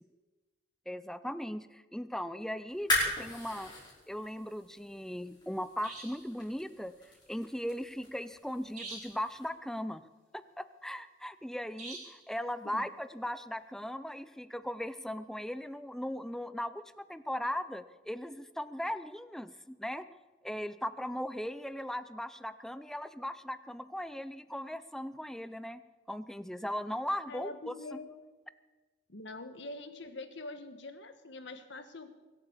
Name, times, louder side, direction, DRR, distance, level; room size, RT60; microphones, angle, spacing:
voice 1, 0.9-2.9 3.2-3.7 4.1-6.9 7.3-10.0 10.3-20.0 20.4-25.8 26.1-28.0, equal, ahead, 13 dB, 0.5 m, -38 dB
sound 1, 2.7-9.5, left 1 dB, 20° left, 5.8 m, -38 dB
sound 2, 3.5-3.7 5.8-6.3 8.8-9.3 11.8-12.3, right 3 dB, 35° right, 4.4 m, -45 dB
voice 2, 27.3-28.1 29.1-32.1, left 2 dB, 65° left, 9 dB, 1.4 m, -44 dB
23.0 x 8.2 x 7.3 m, 1.3 s
head